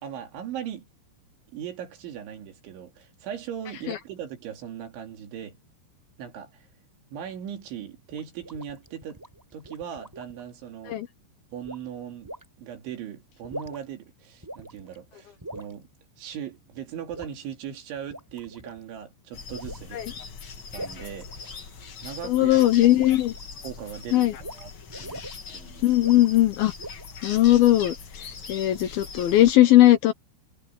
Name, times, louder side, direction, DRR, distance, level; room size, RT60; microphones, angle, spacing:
voice 1, 0.0-0.9 1.5-5.6 6.2-6.7 7.1-9.2 9.5-11.0 11.5-15.9 16.2-20.0 20.7-21.7 22.0-22.9 23.6-25.2 25.5-25.9, right 9 dB, 85° right, 5.2 m, -39 dB
sound 1, 8.1-10.4 11.6-11.9 12.3-12.5 13.3-14.0 14.4-15.0 15.4-15.7 17.1-17.4 18.0-18.8 19.5-19.9 20.7-21.9 22.5-23.4 24.4-24.6 24.9-25.4 26.0-26.4 26.8-27.2, right 1 dB, 5° right, 4.1 m, -41 dB
sound 2, 19.3-29.5, left 5 dB, 50° left, 1.5 m, -41 dB
voice 2, 22.2-23.3 24.1-24.3 25.8-26.7 27.2-27.9 28.5-30.1, left 14 dB, 70° left, 2.4 m, -18 dB
omnidirectional pair, 5.2 m